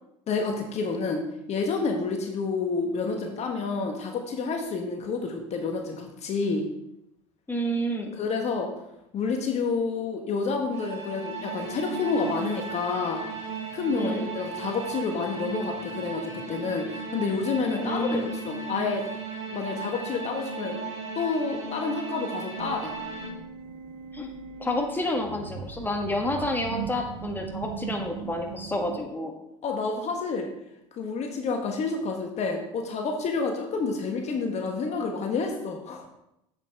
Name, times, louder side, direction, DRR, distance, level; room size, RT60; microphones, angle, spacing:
voice 1, 0.3-1.2 1.5-6.6 8.2-8.7 9.1-13.2 13.7-19.0 19.5-20.8 21.1-22.9 29.6-30.5 31.0-36.1, left 4 dB, 45° left, 3 dB, 1.3 m, -29 dB
voice 2, 7.5-8.1 14.0-14.3 17.8-18.3 24.1-24.3 24.6-29.3, left 1 dB, 10° left, 2 dB, 1.5 m, -29 dB
sound 1, 10.7-23.3, right 4 dB, 45° right, 2.9 m, -36 dB
sound 2, 22.6-29.0, right 7 dB, 70° right, 1.0 m, -39 dB
7.7 x 7.2 x 3.5 m, 0.84 s
hypercardioid pair, 80°, 16 cm